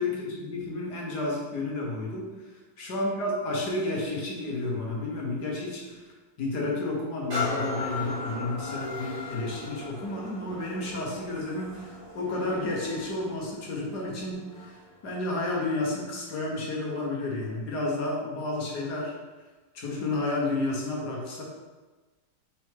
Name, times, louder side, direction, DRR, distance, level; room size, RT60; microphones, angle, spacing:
voice 1, 0.0-2.3 2.8-6.0 6.4-19.1 19.7-21.4, left 2 dB, 65° left, -2 dB, 1.8 m, -31 dB
sound 1, 7.3-14.9 15.5-15.6, left 3 dB, 30° right, 1.6 m, -37 dB
6.1 x 4.6 x 3.6 m, 1.3 s
omnidirectional pair, 1.9 m